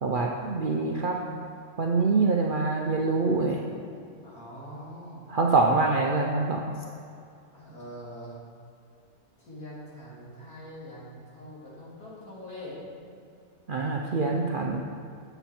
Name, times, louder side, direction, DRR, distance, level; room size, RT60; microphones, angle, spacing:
voice 1, 0.0-1.2 1.8-3.6 5.3-6.8 13.7-14.8, right 3 dB, 60° right, 0 dB, 0.5 m, -25 dB
voice 2, 4.2-5.3 7.5-8.4 9.4-13.2, equal, 80° left, -7 dB, 3.0 m, -43 dB
8.0 x 7.9 x 4.3 m, 2.5 s
omnidirectional pair, 1.6 m